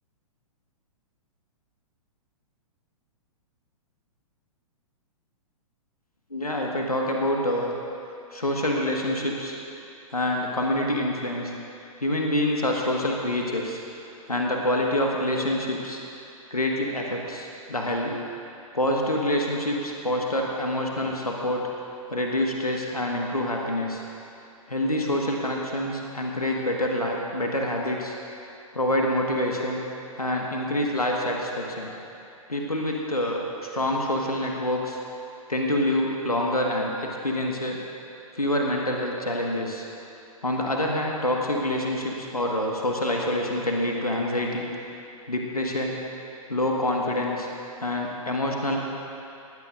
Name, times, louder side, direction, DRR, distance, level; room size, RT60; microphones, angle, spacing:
voice 1, 6.3-7.7 8.3-9.6 10.1-11.5 12.0-16.0 16.5-18.2 18.7-21.7 22.1-24.0 24.7-28.1 28.7-29.8 30.2-31.9 32.5-35.0 35.5-37.8 38.3-39.9 40.4-44.7 45.3-46.0 46.5-47.5 47.8-48.8, left 1 dB, 85° left, -1 dB, 1.6 m, -26 dB
20.5 x 15.5 x 2.6 m, 2.7 s
figure-of-eight pair, 110°, 19 cm